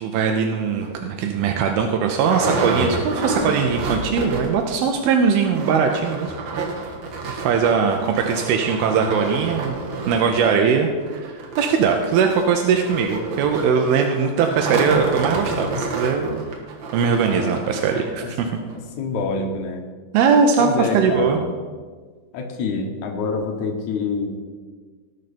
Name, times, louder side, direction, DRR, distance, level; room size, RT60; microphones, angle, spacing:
voice 1, 0.0-6.3 7.3-9.7 10.1-16.4 16.9-18.5 20.1-21.4, right 6 dB, 80° right, 3 dB, 2.2 m, -20 dB
sound 1, 0.8-0.9 1.4-1.5 1.7-4.7 4.9-5.0 5.3-18.1 18.7-18.8 19.2-19.3, right 3 dB, 65° right, 1.8 m, -29 dB
voice 2, 17.2-17.6 18.2-18.3 19.0-19.9 20.6-21.5 22.3-24.3, left 4 dB, 75° left, 2 dB, 1.7 m, -26 dB
19.0 x 6.6 x 4.3 m, 1.5 s
omnidirectional pair, 5.2 m